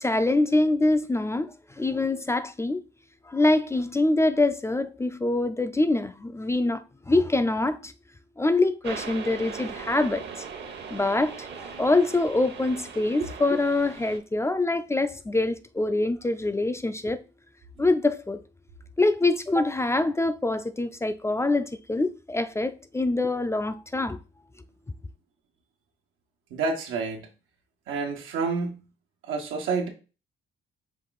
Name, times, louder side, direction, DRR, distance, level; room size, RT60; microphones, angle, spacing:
voice 1, 0.0-2.8 3.3-7.9 8.4-10.2 10.9-17.2 17.8-18.4 19.0-24.2, left 2 dB, 15° left, 0.3 m, -25 dB
sound 1, 8.8-14.2, right 6 dB, 60° right, 1.0 m, -39 dB
voice 2, 26.5-27.3 27.9-28.9 29.2-29.9, right 4 dB, 90° right, 1.1 m, -29 dB
5.5 x 2.4 x 3.9 m
cardioid pair, 90°, 20 cm